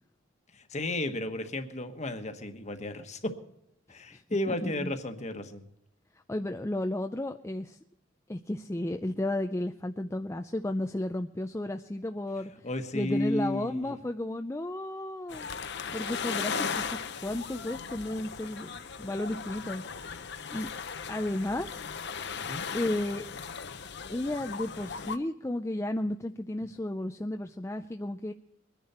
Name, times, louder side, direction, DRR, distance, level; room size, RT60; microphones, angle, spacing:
voice 1, 0.5-3.4 3.9-5.6 12.6-14.0 22.4-22.7, left 1 dB, 35° left, 7 dB, 1.3 m, -33 dB
voice 2, 4.5-4.9 6.3-7.8 8.3-12.5 12.9-15.5 15.9-18.7 19.0-19.8 20.5-20.7 21.1-21.8 22.7-23.2 24.1-28.3, left 1 dB, 15° left, 5 dB, 0.5 m, -33 dB
sound 1, 15.3-25.2, left 6 dB, 55° left, 0.9 m, -37 dB
23.0 x 10.5 x 4.3 m, 0.80 s
head